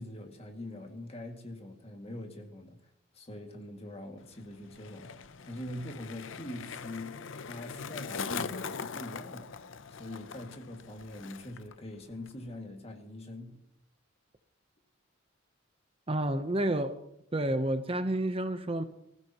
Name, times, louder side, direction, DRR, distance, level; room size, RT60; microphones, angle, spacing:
voice 1, 0.0-2.8 3.1-5.2 5.4-9.6 9.9-13.6, left 1 dB, 30° left, 2.2 m, -43 dB
Skateboard, 4.2-11.8 12.0-12.5, left 6 dB, 65° left, 0.6 m, -41 dB
voice 2, 16.1-17.0 17.3-18.8, right 1 dB, 25° right, 0.8 m, -30 dB
24.5 x 15.0 x 3.0 m
head